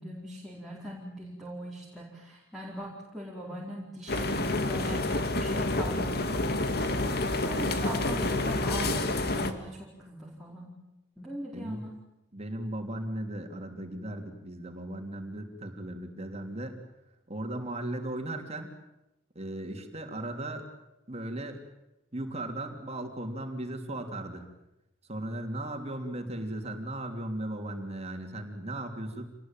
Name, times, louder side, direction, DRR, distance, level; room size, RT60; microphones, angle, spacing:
voice 1, 0.0-6.9 7.4-10.7 11.2-11.9, equal, ahead, -5 dB, 4.6 m, -41 dB
sound 1, 4.1-9.5, left 2 dB, 60° left, 2.2 m, -28 dB
voice 2, 11.5-11.8 12.3-16.8 17.3-18.7 19.3-20.6 21.1-21.6 22.1-24.5 25.1-29.3, right 1 dB, 35° right, 4 dB, 3.2 m, -37 dB
27.0 x 20.0 x 9.1 m, 0.92 s
head